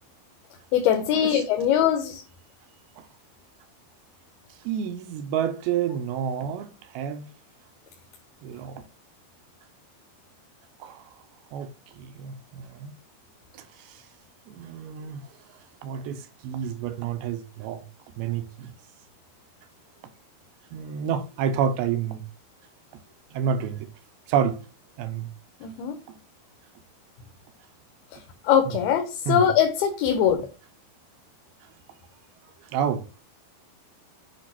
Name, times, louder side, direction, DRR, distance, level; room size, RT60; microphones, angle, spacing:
voice 1, 0.7-2.2 25.6-26.0 28.5-30.4, left 9 dB, 80° left, 2.8 m, -22 dB
voice 2, 4.7-7.3 8.4-8.8 10.8-11.0 11.5-11.7 12.0-12.9 14.5-15.2 15.8-17.8 18.2-18.7 20.7-22.2 23.3-23.9 24.3-24.6 25.0-25.3 29.3-29.4 32.7-33.1, right 8 dB, 85° right, 2.6 m, -29 dB
8.1 x 3.4 x 5.8 m
omnidirectional pair, 4.5 m